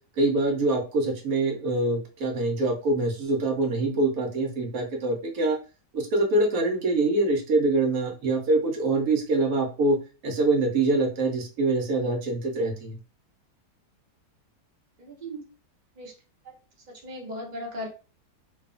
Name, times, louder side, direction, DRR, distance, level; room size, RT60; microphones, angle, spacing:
voice 1, 0.2-5.6 5.9-10.0 10.2-13.0, right 2 dB, 65° right, 1 dB, 1.0 m, -24 dB
voice 2, 15.0-15.5 16.0-16.1 16.4-16.6 16.9-17.9, equal, 45° right, -1 dB, 0.5 m, -37 dB
2.7 x 2.3 x 2.4 m, 0.34 s
omnidirectional pair, 1.8 m